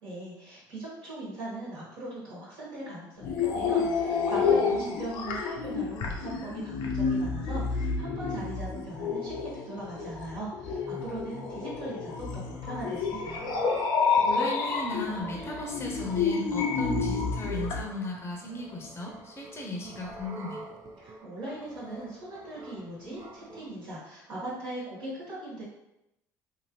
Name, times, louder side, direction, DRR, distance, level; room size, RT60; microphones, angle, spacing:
voice 1, 0.0-13.4 21.0-25.6, right 1 dB, 65° right, -7 dB, 1.4 m, -40 dB
sound 1, 3.2-17.8, left 5 dB, 65° left, 0.5 m, -29 dB
voice 2, 4.5-5.0 14.2-20.6, left 2 dB, 25° left, 0 dB, 0.7 m, -36 dB
sound 2, 12.4-23.7, right 3 dB, 45° right, 0.6 m, -46 dB
2.7 x 2.6 x 3.0 m, 0.85 s
hypercardioid pair, 65°, 9 cm